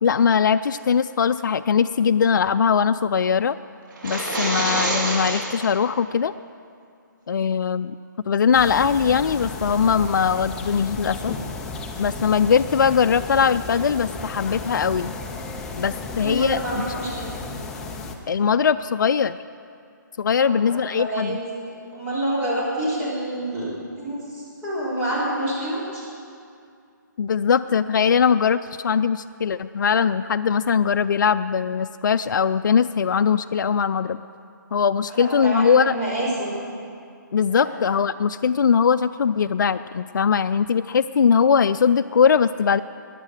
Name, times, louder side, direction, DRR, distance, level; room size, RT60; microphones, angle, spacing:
voice 1, 0.0-3.6 4.0-6.3 7.3-7.9 8.3-11.3 12.0-15.1 15.8-16.8 18.3-19.4 20.2-21.4 27.2-34.2 34.7-36.0 37.3-42.8, left 6 dB, 70° left, 11 dB, 0.4 m, -20 dB
sound 1, 3.9-5.7, right 2 dB, 75° right, 3.7 m, -26 dB
sound 2, 8.5-18.2, left 3 dB, 5° left, 0.5 m, -34 dB
voice 2, 16.2-17.3 20.4-21.4 21.9-23.7 24.0-26.1 35.1-36.5 37.5-37.8, right 1 dB, 15° right, -8 dB, 3.9 m, -27 dB
20.5 x 7.5 x 6.5 m, 2.4 s
hypercardioid pair, 165°, 11 cm